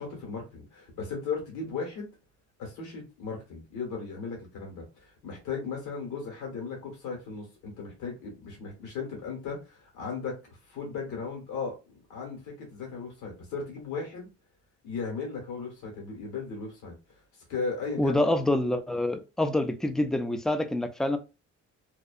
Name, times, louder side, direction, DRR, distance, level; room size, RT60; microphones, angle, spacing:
voice 1, 0.0-2.1 2.6-10.4 10.6-14.3 14.8-17.2 17.5-18.2, left 4 dB, 85° left, 1.5 m, -36 dB
voice 2, 18.0-21.2, left 1 dB, ahead, 0.3 m, -26 dB
2.7 x 2.3 x 2.4 m
cardioid pair, 90°, 30 cm